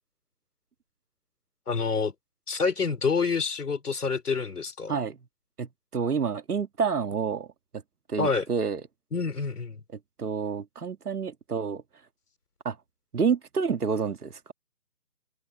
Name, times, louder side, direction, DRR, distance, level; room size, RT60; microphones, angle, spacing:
voice 1, 1.7-2.1 2.5-4.9 8.2-8.5 9.1-9.8, left 5 dB, 85° left, 3.7 m, -27 dB
voice 2, 5.6-7.5 8.1-8.8 10.2-11.8 12.7-12.8 13.1-14.5, right 6 dB, 80° right, 2.0 m, -28 dB
hypercardioid pair, 165°, 45 cm